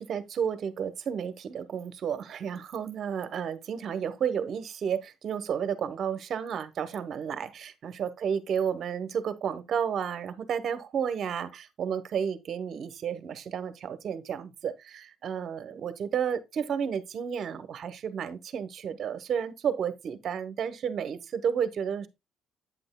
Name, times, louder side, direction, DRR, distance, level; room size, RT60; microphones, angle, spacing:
voice 1, 0.0-22.1, right 7 dB, 50° right, 0.9 m, -32 dB
8.4 x 7.8 x 2.2 m
cardioid pair, 115°, 0 cm